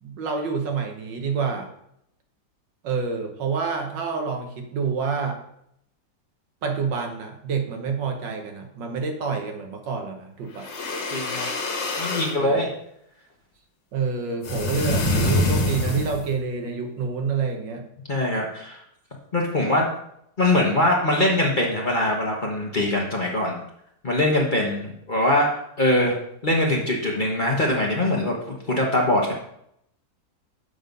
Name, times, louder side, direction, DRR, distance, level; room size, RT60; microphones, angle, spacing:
voice 1, 0.0-1.7 2.8-5.4 6.6-10.7 12.4-12.6 13.9-17.8, right 5 dB, 75° right, 3 dB, 1.8 m, -28 dB
sound 1, 10.5-12.4 14.4-16.3, left 2 dB, 70° left, 1.8 m, -25 dB
voice 2, 11.1-11.5 12.0-12.7 18.1-18.8 19.3-19.9 20.4-23.6 24.0-25.5 25.8-26.1 26.4-28.4 28.7-29.3, left 1 dB, 30° left, -2 dB, 1.1 m, -22 dB
7.0 x 5.6 x 5.3 m, 0.75 s
omnidirectional pair, 2.0 m